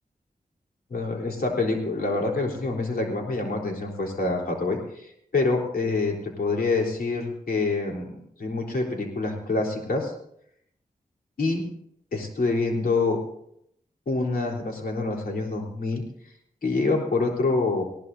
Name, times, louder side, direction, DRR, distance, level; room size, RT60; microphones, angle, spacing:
voice 1, 0.9-10.1 11.4-11.7 12.1-13.2 14.1-16.0 16.6-17.8, left 3 dB, 90° left, 0 dB, 3.8 m, -26 dB
20.0 x 18.5 x 2.7 m, 0.71 s
wide cardioid pair, 70°, 15 cm